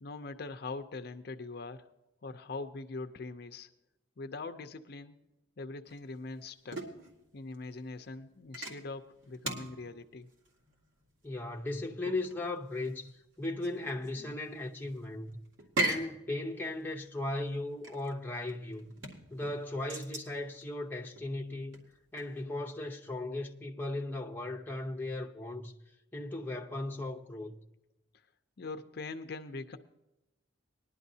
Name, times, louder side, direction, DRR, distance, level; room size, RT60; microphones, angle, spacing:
voice 1, 0.0-1.9 2.2-3.7 4.2-5.2 5.6-6.8 7.3-10.3 28.6-29.8, left 3 dB, 50° left, 0.5 m, -42 dB
sound 1, 5.9-22.4, right 2 dB, 75° right, 2.0 m, -41 dB
voice 2, 11.2-15.4 15.8-18.9 19.3-21.8 22.1-25.7 26.1-27.6, left 2 dB, 10° left, 0.7 m, -37 dB
20.0 x 11.0 x 2.7 m
head